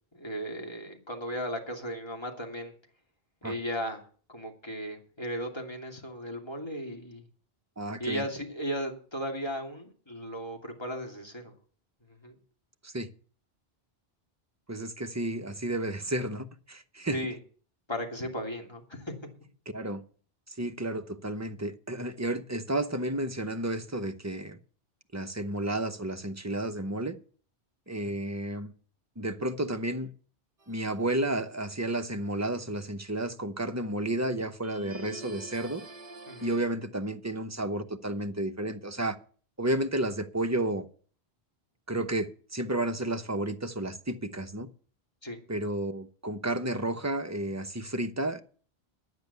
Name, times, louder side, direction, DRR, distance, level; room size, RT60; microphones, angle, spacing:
voice 1, 0.1-2.7 3.4-4.0 4.3-7.2 8.0-11.5 12.2-12.3 17.1-17.4 17.9-19.1 28.0-28.1 36.3-36.5 45.2-45.4, equal, 25° left, 2.7 m, -36 dB
voice 2, 7.8-8.2 12.8-13.1 14.7-17.2 19.7-20.0 20.6-24.6 25.1-27.2 27.9-28.7 29.2-30.1 30.7-35.8 36.4-39.2 39.6-40.9 41.9-44.7 45.5-48.4, right 1 dB, 15° right, 0.8 m, -32 dB
sound 1, 30.6-31.2 34.6-36.6, right 2 dB, 35° right, 1.1 m, -45 dB
10.5 x 9.4 x 6.8 m
omnidirectional pair, 1.1 m